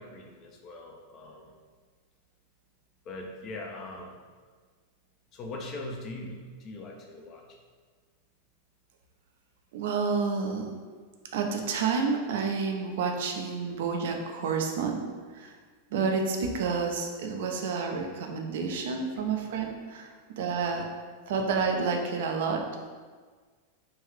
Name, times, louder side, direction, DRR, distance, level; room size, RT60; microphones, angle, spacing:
voice 1, 0.0-1.5 3.0-4.2 5.3-7.6 19.2-19.3 20.1-20.2 20.7-20.8, left 2 dB, 35° left, 1 dB, 0.5 m, -41 dB
voice 2, 9.7-10.7 11.3-15.0 15.3-15.5 15.9-20.1 20.4-20.9 21.3-22.9, right 5 dB, 55° right, 3 dB, 0.4 m, -29 dB
3.2 x 2.6 x 3.5 m, 1.5 s
figure-of-eight pair, 90°, 0 cm